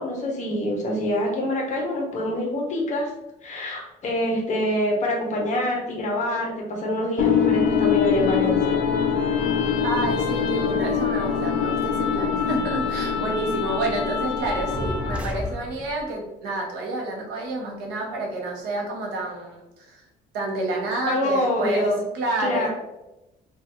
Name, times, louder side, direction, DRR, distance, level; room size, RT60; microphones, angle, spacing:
voice 1, 0.0-3.1 3.4-8.8 21.0-22.0 22.4-22.7, left 1 dB, 45° left, 0 dB, 0.9 m, -25 dB
sound 1, 7.2-15.4, left 7 dB, 80° left, 0.4 m, -24 dB
voice 2, 9.8-20.0 20.3-22.7, right 2 dB, 85° right, 1 dB, 0.8 m, -29 dB
sound 2, 14.4-16.1, equal, 5° right, 0.4 m, -32 dB
2.8 x 2.3 x 2.9 m, 0.93 s
cardioid pair, 110°, 17 cm